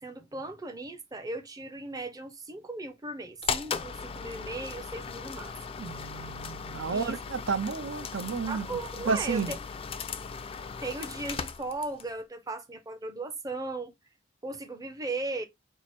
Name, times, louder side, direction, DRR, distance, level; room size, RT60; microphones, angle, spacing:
voice 1, 0.0-5.8 6.9-7.2 8.5-9.4 10.8-13.9 14.4-15.5, right 2 dB, 20° right, 0.6 m, -37 dB
sound 1, 3.4-12.1, left 6 dB, 30° left, 0.4 m, -37 dB
voice 2, 5.8-8.7 9.1-9.5, right 5 dB, 80° right, 0.5 m, -31 dB
4.6 x 2.0 x 4.2 m
head